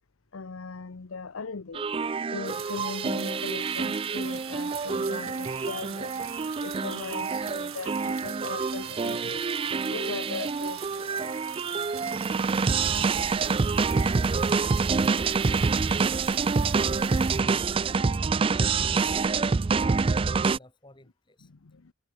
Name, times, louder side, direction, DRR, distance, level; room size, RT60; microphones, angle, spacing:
voice 1, 0.3-1.8 2.3-6.2 6.6-9.4 9.9-11.4 18.7-18.8 21.4-21.9, left 4 dB, 75° left, 0.8 m, -39 dB
sound 1, 1.7-20.6, right 4 dB, 25° right, 0.3 m, -27 dB
sound 2, 2.4-17.4, right 10 dB, 80° right, 5.6 m, -43 dB
voice 2, 12.9-13.2 15.5-16.1 17.3-18.2 18.8-21.5, left 1 dB, 20° left, 3.1 m, -55 dB
head